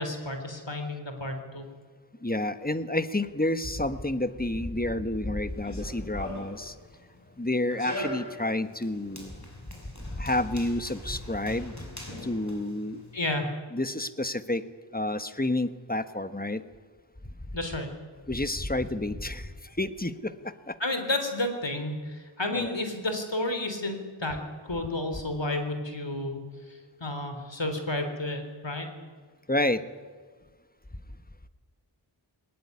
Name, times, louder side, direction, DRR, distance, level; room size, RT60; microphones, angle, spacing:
voice 1, 0.0-1.7 13.1-13.5 17.5-17.9 20.8-26.4 26.7-28.9, left 2 dB, 65° left, 6 dB, 3.7 m, -31 dB
voice 2, 2.2-6.7 7.4-9.3 10.2-11.7 12.2-13.0 13.7-14.6 14.9-16.6 18.3-19.5 19.8-20.7 22.5-22.7 29.5-29.8, left 1 dB, 20° left, 11 dB, 1.3 m, -29 dB
Run, 5.5-13.2, equal, 35° left, 5.9 m, -41 dB
21.0 x 19.0 x 9.6 m, 1.5 s
wide cardioid pair, 45°, 47 cm